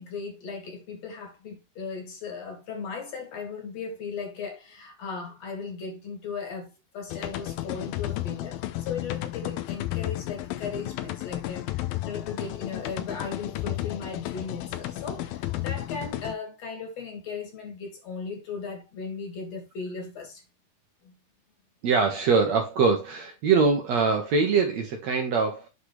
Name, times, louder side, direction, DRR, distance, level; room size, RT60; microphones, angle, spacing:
voice 1, 0.0-20.4 21.0-21.1, left 5 dB, 50° left, 2.7 m, -37 dB
sound 1, 7.1-16.3, left 15 dB, 80° left, 2.4 m, -33 dB
voice 2, 21.8-25.7, right 5 dB, 60° right, 1.9 m, -23 dB
8.5 x 5.9 x 3.2 m
omnidirectional pair, 4.5 m